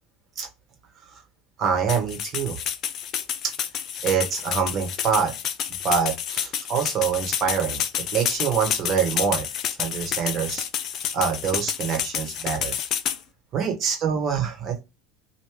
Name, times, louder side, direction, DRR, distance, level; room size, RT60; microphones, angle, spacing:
voice 1, 1.6-2.6 4.0-5.3 5.8-7.8 8.1-9.4 9.8-10.7 11.1-12.7 13.5-14.8, right 7 dB, 45° right, 3 dB, 1.3 m, -25 dB
sound 1, 1.9-13.2, left 9 dB, 45° left, 0.4 m, -29 dB
3.2 x 2.5 x 3.5 m, 0.25 s
figure-of-eight pair, 70°, 0 cm